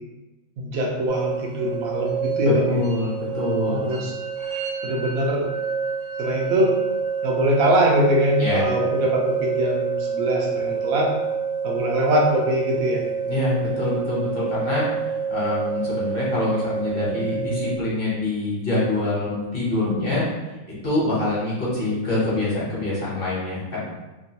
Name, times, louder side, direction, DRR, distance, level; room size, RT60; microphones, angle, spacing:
voice 1, 0.6-2.8 3.7-4.1 4.8-5.5 6.2-6.7 7.2-11.1 11.6-13.0, equal, 80° right, -2 dB, 1.1 m, -22 dB
sound 1, 1.1-17.8, right 6 dB, 55° right, 0.9 m, -27 dB
voice 2, 2.4-3.9 8.4-8.7 13.3-14.9 15.3-20.3 20.8-23.8, left 2 dB, 45° left, -7 dB, 1.0 m, -25 dB
3.0 x 2.5 x 2.7 m, 1.1 s
omnidirectional pair, 1.5 m